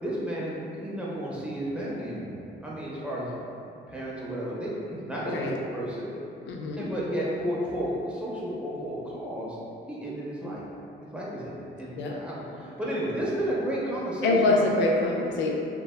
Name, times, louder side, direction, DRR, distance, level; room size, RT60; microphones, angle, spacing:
voice 1, 0.0-3.3 3.9-6.1 6.8-9.6 9.9-10.7 11.1-11.5 11.8-14.9, right 1 dB, 5° right, -6 dB, 0.5 m, -32 dB
voice 2, 5.2-5.6 6.4-6.9 12.0-12.2 14.2-15.5, left 2 dB, 70° left, 0 dB, 0.4 m, -25 dB
2.6 x 2.2 x 2.2 m, 2.6 s
cardioid pair, 90°, 20 cm